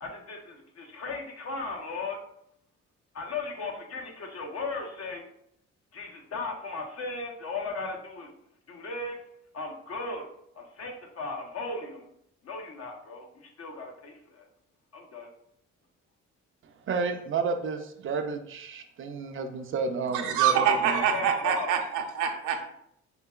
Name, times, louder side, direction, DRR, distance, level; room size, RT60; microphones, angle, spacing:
voice 1, 0.0-2.2 3.1-5.2 5.9-8.3 8.7-9.2 9.5-10.3 10.5-12.1 12.4-14.4 14.9-15.3 20.9-21.7, left 3 dB, 50° left, 1 dB, 0.8 m, -36 dB
voice 2, 16.9-21.0, right 4 dB, 45° right, 6 dB, 0.4 m, -31 dB
voice 3, 20.2-22.6, right 8 dB, 80° right, 4 dB, 0.6 m, -25 dB
3.7 x 2.7 x 2.3 m, 0.71 s
cardioid pair, 90°, 30 cm